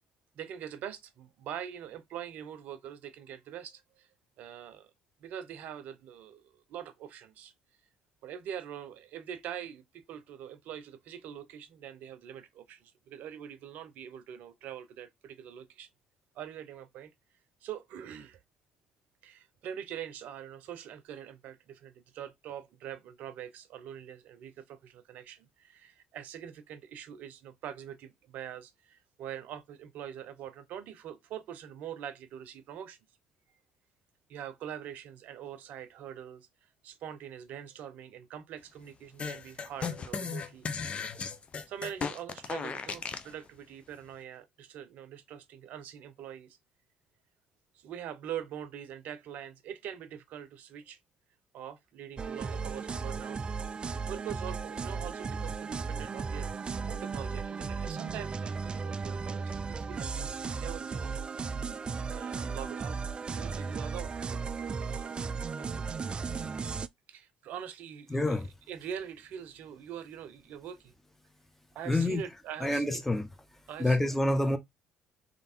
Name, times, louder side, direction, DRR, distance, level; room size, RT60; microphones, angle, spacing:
voice 1, 0.3-4.1 4.4-4.9 5.2-7.5 8.2-15.9 16.3-17.1 17.6-18.4 19.2-33.0 34.3-36.5 36.8-40.7 41.7-46.6 47.7-51.0 51.5-53.4 54.1-56.5 56.9-61.3 62.1-65.2 65.6-65.7 67.1-70.9 71.7-73.0 73.7-74.1, right 9 dB, 65° right, 0.7 m, -43 dB
sound 1, 39.2-43.3, left 5 dB, 40° left, 0.7 m, -36 dB
sound 2, 52.2-66.9, right 5 dB, 35° right, 0.3 m, -35 dB
voice 2, 68.1-68.5 71.8-72.2 72.6-73.3 73.8-74.6, left 1 dB, 10° left, 1.0 m, -27 dB
3.4 x 2.8 x 4.3 m
hypercardioid pair, 60°, 3 cm